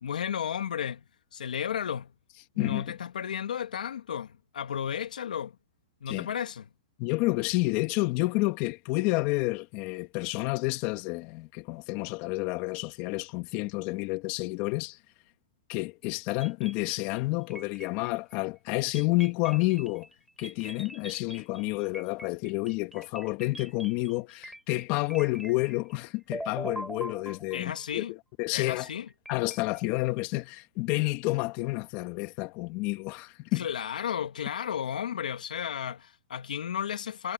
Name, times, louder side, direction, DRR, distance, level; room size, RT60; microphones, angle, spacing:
voice 1, 0.0-1.0 1.3-2.1 2.6-5.6 6.0-6.6 27.5-28.1 28.5-29.1 33.6-37.3, left 8 dB, 85° left, 1.9 m, -33 dB
voice 2, 2.6-2.9 6.1-6.3 7.0-15.0 15.7-20.1 20.4-28.9 29.3-33.7, left 22 dB, 35° left, 2.1 m, -30 dB
sound 1, 16.4-17.2 17.5-18.3 19.0-26.0 26.3-27.8 28.6-30.1, right 1 dB, ahead, 5.4 m, -43 dB
hypercardioid pair, 150°, 4 cm